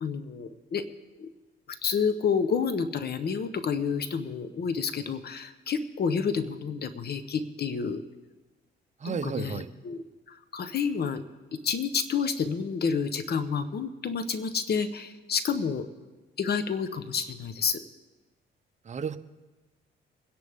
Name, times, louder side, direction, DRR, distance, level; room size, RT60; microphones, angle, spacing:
voice 1, 0.0-0.8 1.2-1.3 1.8-8.0 9.0-10.0 10.3-11.2 11.6-15.9 16.4-17.8, left 6 dB, 55° left, 10 dB, 1.1 m, -29 dB
voice 2, 9.0-9.7 18.9-19.2, right 6 dB, 35° right, 10 dB, 0.8 m, -32 dB
23.5 x 10.5 x 3.6 m, 1.2 s
cardioid pair, 90°, 20 cm